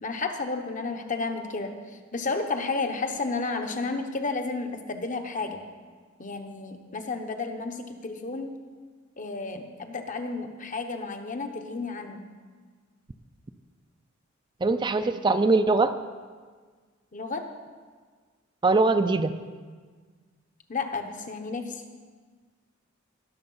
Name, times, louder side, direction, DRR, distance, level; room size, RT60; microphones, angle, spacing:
voice 1, 0.0-5.6 6.2-8.5 9.2-12.3 17.1-17.4 20.7-21.8, left 3 dB, 40° left, 6 dB, 1.0 m, -32 dB
voice 2, 14.6-16.0 18.6-19.3, right 3 dB, 25° right, 9 dB, 0.4 m, -22 dB
18.5 x 6.6 x 5.5 m, 1.5 s
head